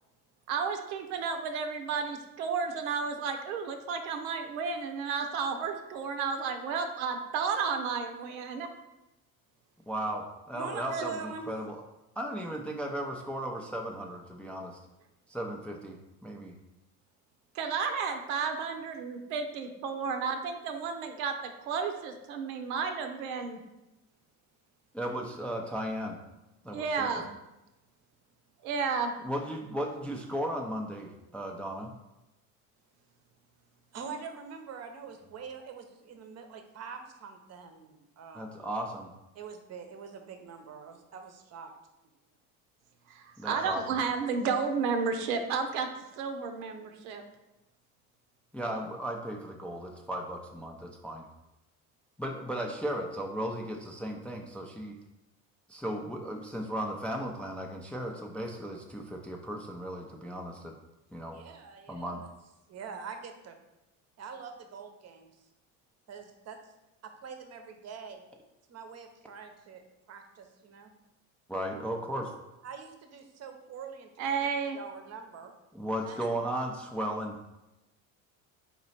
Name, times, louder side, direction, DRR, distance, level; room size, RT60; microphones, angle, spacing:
voice 1, 0.5-8.7 10.9-11.0 17.5-23.6 26.7-27.3 28.6-29.1 43.1-45.9 46.1-47.2 74.2-74.8, right 5 dB, 80° right, 6 dB, 0.7 m, -32 dB
voice 2, 9.9-11.8 12.2-14.8 15.3-16.5 24.9-26.2 26.6-27.1 29.2-31.9 38.3-39.1 43.4-44.0 48.5-51.3 52.2-55.0 55.7-60.7 61.1-61.4 61.9-62.2 71.5-72.3 75.7-77.4, equal, 5° left, 1 dB, 0.4 m, -36 dB
voice 3, 10.5-11.4 33.9-38.7 39.3-41.7 61.3-62.1 62.7-63.5 64.2-65.3 66.1-66.6 67.0-68.2 68.7-70.9 72.6-74.5 74.7-75.5 76.0-76.3, right 5 dB, 40° right, 5 dB, 0.8 m, -44 dB
4.1 x 2.9 x 4.2 m, 0.97 s
supercardioid pair, 80°, 41 cm